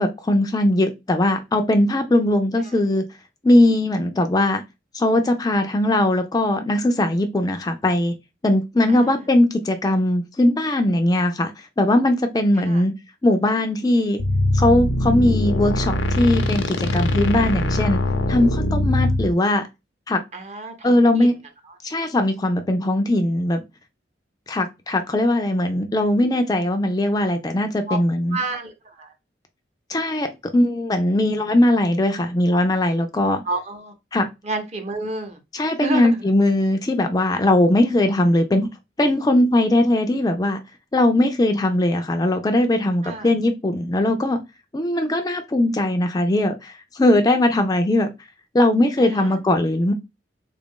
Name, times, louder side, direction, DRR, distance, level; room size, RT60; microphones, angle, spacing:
voice 1, 0.0-3.0 3.4-4.6 4.9-8.1 8.4-11.5 11.8-12.9 13.2-14.2 14.5-18.0 18.3-19.6 20.1-20.2 20.8-21.3 21.8-23.6 24.5-28.4 29.9-30.3 30.5-33.4 34.1-34.3 35.5-38.7 39.0-40.6 40.9-44.4 44.7-48.1 48.5-49.9, left 1 dB, 20° left, 0.4 m, -19 dB
voice 2, 8.9-9.2 12.6-12.8 20.3-21.3 27.9-28.0 28.3-29.1 33.4-33.9 34.4-35.4 35.8-36.1 43.0-43.3 49.0-49.4, right 2 dB, 35° right, 0.8 m, -30 dB
sound 1, 14.2-19.3, left 1 dB, 85° left, 0.6 m, -22 dB
3.4 x 2.5 x 3.6 m
head